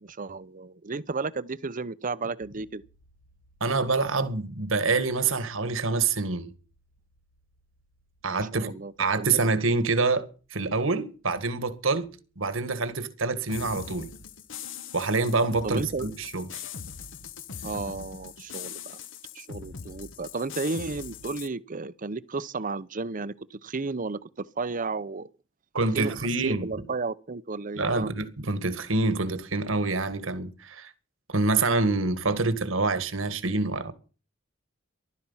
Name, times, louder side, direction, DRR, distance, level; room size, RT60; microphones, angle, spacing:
voice 1, 0.0-2.8 8.5-9.3 15.6-16.1 17.6-18.8 19.3-25.3 25.9-28.1, right 3 dB, 40° right, 0.8 m, -33 dB
sound 1, 2.4-17.2, equal, 90° left, 7.2 m, -67 dB
voice 2, 3.6-6.5 8.2-8.7 9.0-10.3 10.5-12.1 12.4-14.1 14.9-16.6 25.7-26.7 27.8-30.9 31.3-33.9, right 3 dB, 70° right, 1.9 m, -26 dB
sound 2, 13.5-21.5, left 6 dB, 65° left, 1.2 m, -41 dB
15.0 x 12.5 x 5.7 m
head